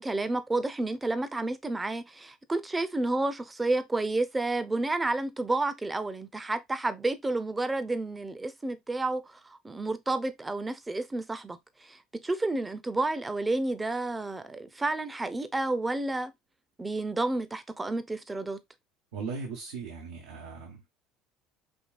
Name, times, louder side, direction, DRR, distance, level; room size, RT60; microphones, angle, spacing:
voice 1, 0.0-16.3 16.8-18.6, right 2 dB, 15° right, 0.7 m, -30 dB
voice 2, 19.1-20.9, right 5 dB, 85° right, 1.1 m, -38 dB
5.3 x 2.7 x 2.4 m
supercardioid pair, 90°, 0 cm